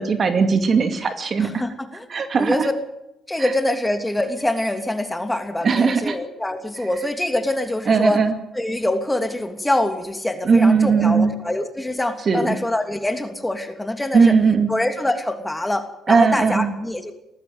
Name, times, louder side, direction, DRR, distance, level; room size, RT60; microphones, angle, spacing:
voice 1, 0.0-1.5 2.1-2.7 5.6-6.2 7.9-8.4 10.5-11.3 12.3-12.6 14.1-14.7 16.1-16.7, right 5 dB, 45° right, 7 dB, 2.3 m, -18 dB
voice 2, 1.4-2.1 2.4-2.8 3.3-8.2 8.5-14.3 14.7-17.1, left 1 dB, 10° left, 6 dB, 2.9 m, -24 dB
19.0 x 14.5 x 9.6 m, 0.85 s
cardioid pair, 90°, 0 cm